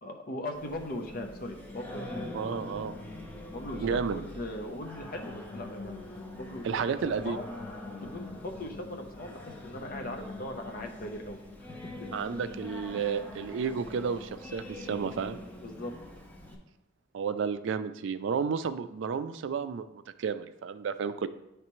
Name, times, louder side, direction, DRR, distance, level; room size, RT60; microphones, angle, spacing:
voice 1, 0.0-2.3 3.5-6.0 6.3-6.8 7.2-7.5 8.0-12.1 13.0-13.1 15.6-15.9, left 1 dB, 50° left, 3 dB, 0.7 m, -39 dB
Singing, 0.5-16.5, left 2 dB, 10° left, 0.7 m, -43 dB
voice 2, 2.3-3.0 3.8-4.2 6.6-7.4 12.1-15.4 17.1-21.3, right 6 dB, 70° right, 11 dB, 0.3 m, -32 dB
9.5 x 3.3 x 3.1 m, 0.89 s
head